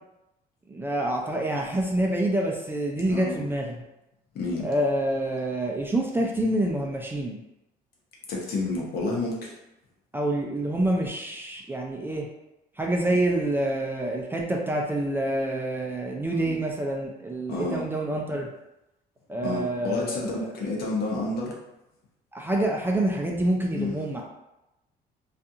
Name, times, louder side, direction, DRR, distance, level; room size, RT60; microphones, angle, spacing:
voice 1, 0.7-3.7 4.6-7.4 10.1-12.3 12.8-18.5 19.3-20.5 22.3-24.2, right 1 dB, 15° right, -1 dB, 0.4 m, -27 dB
voice 2, 3.1-3.4 4.3-4.7 8.3-9.5 16.3-16.6 17.5-17.9 19.4-21.6 23.7-24.0, left 2 dB, 65° left, -2 dB, 0.8 m, -30 dB
2.4 x 2.4 x 2.7 m, 0.92 s
cardioid pair, 110°, 17 cm